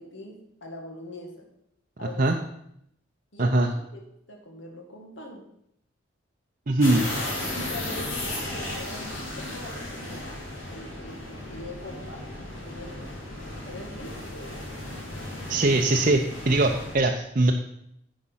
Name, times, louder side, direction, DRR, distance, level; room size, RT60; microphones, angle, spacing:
voice 1, 0.0-1.3 2.0-2.4 3.3-4.0 4.3-5.5 7.5-10.2 10.7-12.3 12.6-13.1 13.6-14.7, left 1 dB, 65° left, 1 dB, 2.1 m, -42 dB
voice 2, 2.0-2.4 3.4-3.7 6.7-7.1 15.5-17.5, right 2 dB, 45° right, 2 dB, 0.6 m, -22 dB
sound 1, 6.8-17.0, left 1 dB, 90° left, 2.5 m, -35 dB
9.9 x 5.3 x 5.7 m, 0.75 s
head